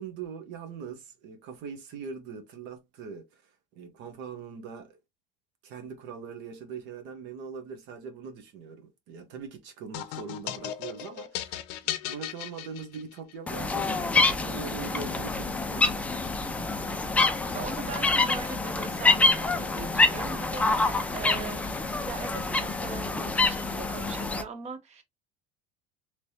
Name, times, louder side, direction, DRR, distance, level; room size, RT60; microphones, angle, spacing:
voice 1, 0.0-5.0 5.6-16.0, right 6 dB, 60° right, 0.8 m, -42 dB
sound 1, 9.9-13.3, left 12 dB, 75° left, 0.5 m, -36 dB
sound 2, 13.5-24.4, left 3 dB, 5° left, 0.3 m, -26 dB
voice 2, 17.5-21.7 22.0-25.0, right 5 dB, 30° right, 0.8 m, -40 dB
3.2 x 3.0 x 2.6 m
cardioid pair, 135°, 21 cm